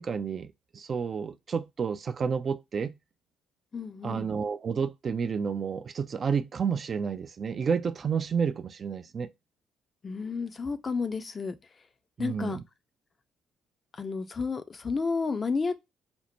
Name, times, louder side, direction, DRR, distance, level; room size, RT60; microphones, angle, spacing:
voice 1, 0.0-2.9 4.0-9.3 12.2-12.6, right 6 dB, 40° right, 0.3 m, -30 dB
voice 2, 3.7-4.4 10.0-11.5 12.2-12.6 13.9-15.8, left 4 dB, 35° left, 0.5 m, -31 dB
4.3 x 2.1 x 2.9 m
figure-of-eight pair, 45°, 0 cm